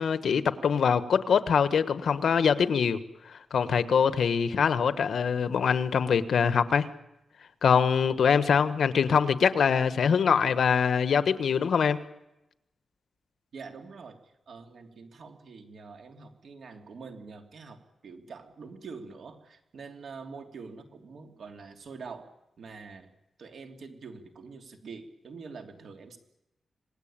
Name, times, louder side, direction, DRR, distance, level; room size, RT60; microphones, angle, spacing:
voice 1, 0.0-3.0 3.5-6.9 7.6-12.0, left 6 dB, 70° left, 12 dB, 1.3 m, -24 dB
voice 2, 13.5-22.3 22.6-23.1 23.4-26.2, right 4 dB, 65° right, 5 dB, 3.1 m, -45 dB
26.5 x 19.5 x 8.9 m, 0.90 s
wide cardioid pair, 170°, 0 cm